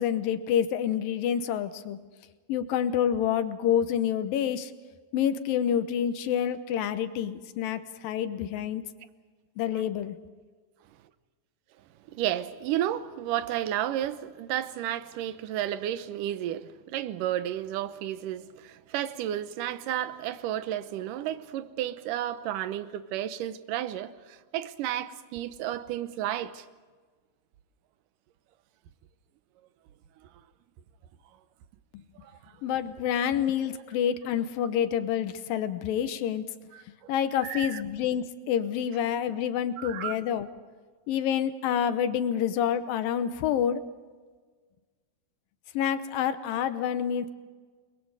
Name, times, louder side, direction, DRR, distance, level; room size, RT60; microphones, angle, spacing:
voice 1, 0.0-2.0 2.5-4.7 5.1-8.8 9.6-10.2 31.9-32.0 32.6-36.4 37.1-40.5 41.1-43.8 45.7-47.3, left 9 dB, 80° left, 2.6 m, -28 dB
voice 2, 12.1-26.7 32.2-32.3 36.7-37.1 37.4-37.8 39.8-40.2, right 12 dB, 75° right, 2.3 m, -32 dB
30.0 x 21.5 x 4.9 m
omnidirectional pair, 4.2 m